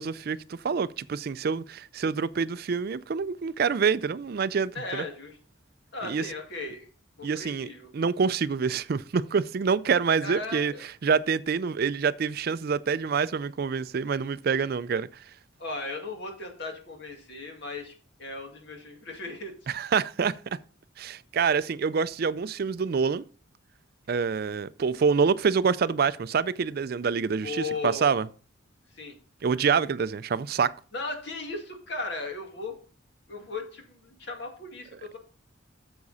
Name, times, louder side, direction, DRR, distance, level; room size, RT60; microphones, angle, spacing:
voice 1, 0.0-5.0 6.0-6.3 7.2-15.1 19.7-20.3 21.0-23.2 24.1-28.3 29.4-30.7, right 5 dB, 50° right, 0.4 m, -26 dB
voice 2, 4.7-5.4 5.9-6.9 7.2-7.9 10.2-10.8 15.6-17.9 18.2-19.7 27.4-28.2 28.9-29.1 30.9-32.8 33.3-35.2, left 3 dB, 60° left, 2.1 m, -37 dB
9.7 x 7.1 x 4.1 m
head